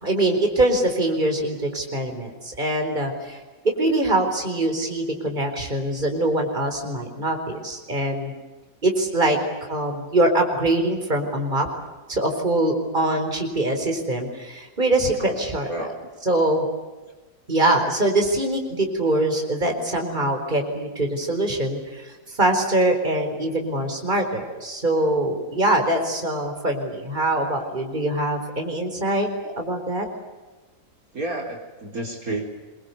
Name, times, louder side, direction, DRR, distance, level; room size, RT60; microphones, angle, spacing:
voice 1, 0.0-3.4 3.6-8.3 8.8-9.4 9.7-11.7 12.1-15.7 16.3-16.6 17.5-29.3 29.6-30.1, right 1 dB, 25° right, 3 dB, 4.6 m, -23 dB
voice 2, 31.1-32.4, right 2 dB, 50° right, 0 dB, 4.3 m, -30 dB
26.5 x 23.5 x 8.4 m, 1.2 s
omnidirectional pair, 2.0 m